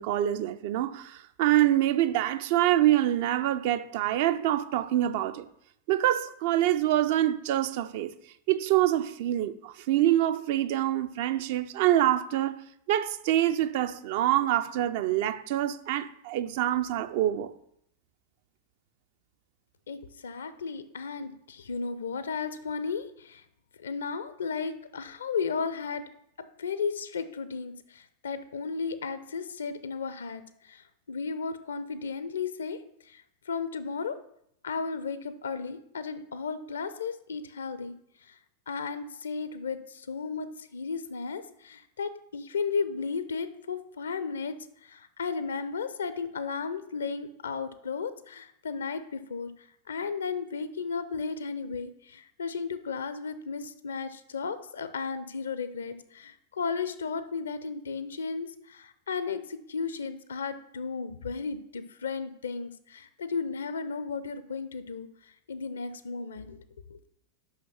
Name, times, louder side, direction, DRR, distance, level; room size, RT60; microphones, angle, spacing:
voice 1, 0.0-5.5 5.9-8.1 8.5-12.6 12.9-17.5, right 13 dB, 50° right, 0.4 m, -25 dB
voice 2, 19.9-23.4 23.8-26.0 26.6-34.2 34.6-37.9 38.2-38.4 38.7-44.6 44.8-66.6 66.9-67.0, left 5 dB, 70° left, 0.5 m, -34 dB
5.7 x 5.7 x 5.8 m
figure-of-eight pair, 90°, 0 cm